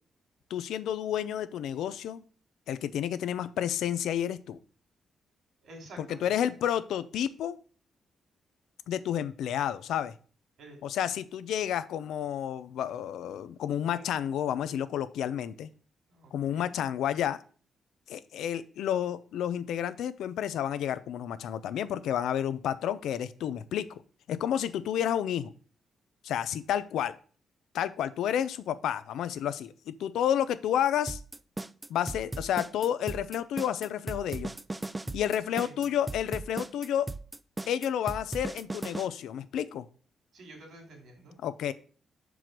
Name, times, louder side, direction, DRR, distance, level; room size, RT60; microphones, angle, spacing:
voice 1, 0.5-2.2 2.7-4.6 6.0-7.6 8.9-10.1 10.8-15.7 16.3-17.4 18.1-23.9 24.3-25.5 26.2-27.1 27.7-31.2 31.9-34.5 35.1-37.1 37.7-39.9 41.4-41.7, left 10 dB, 90° left, 14 dB, 0.5 m, -30 dB
voice 2, 5.6-6.3 10.6-10.8 13.9-14.0 16.1-16.7 35.5-35.8 40.3-41.3, right 2 dB, 75° right, 2 dB, 2.7 m, -49 dB
sound 1, 31.1-39.1, right 2 dB, 15° right, 0.3 m, -37 dB
6.0 x 4.7 x 5.1 m, 0.41 s
cardioid pair, 120°, 0 cm